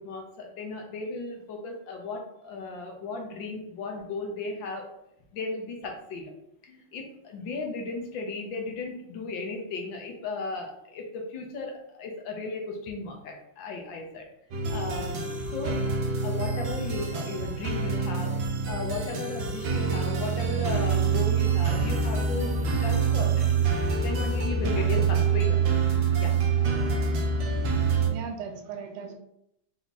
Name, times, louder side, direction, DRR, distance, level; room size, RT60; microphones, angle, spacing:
voice 1, 0.0-4.9 5.3-6.3 6.6-14.2 14.7-15.2 15.5-15.8 16.2-18.3 18.6-23.4 24.0-25.6 26.2-26.4, left 3 dB, 70° left, 1 dB, 1.4 m, -35 dB
sound 1, 14.5-28.1, right 5 dB, 65° right, 1.3 m, -26 dB
voice 2, 28.1-29.1, right 6 dB, 85° right, 4 dB, 1.6 m, -38 dB
4.6 x 2.8 x 4.0 m, 0.79 s
omnidirectional pair, 2.4 m